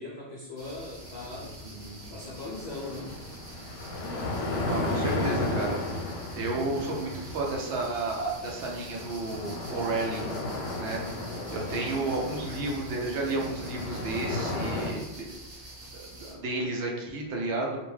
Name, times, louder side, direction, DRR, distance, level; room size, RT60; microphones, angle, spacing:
voice 1, 0.0-1.6 2.1-3.1 11.6-12.4, left 2 dB, 65° left, -6 dB, 0.4 m, -40 dB
sound 1, 0.6-16.3, right 1 dB, 35° right, 0.7 m, -46 dB
sound 2, 1.0-14.9, left 2 dB, 85° left, 0.9 m, -34 dB
voice 2, 1.6-2.1 4.6-5.8 6.4-10.3 10.8-11.1 11.5-15.3 15.6-15.7 15.9-17.8, right 2 dB, 75° right, -1 dB, 0.9 m, -32 dB
2.4 x 2.2 x 3.1 m, 1.0 s
omnidirectional pair, 1.2 m